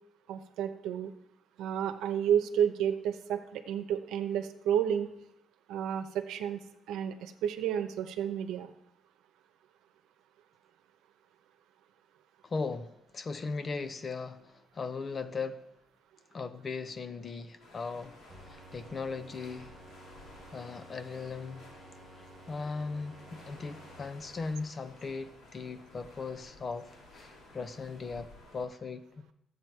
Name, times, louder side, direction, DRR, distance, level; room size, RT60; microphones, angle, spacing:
voice 1, 0.3-1.1 1.6-5.1 5.7-6.6 6.9-8.7, right 9 dB, 90° right, 0.9 m, -31 dB
voice 2, 12.4-15.7 16.3-18.2 18.5-19.7 20.5-21.7 22.5-29.0, left 4 dB, 40° left, 0.8 m, -38 dB
sound 1, 17.6-28.7, left 2 dB, 80° left, 2.8 m, -54 dB
sound 2, 18.3-24.4, right 2 dB, 10° right, 1.4 m, -54 dB
12.0 x 8.1 x 4.6 m
cardioid pair, 90°, 0 cm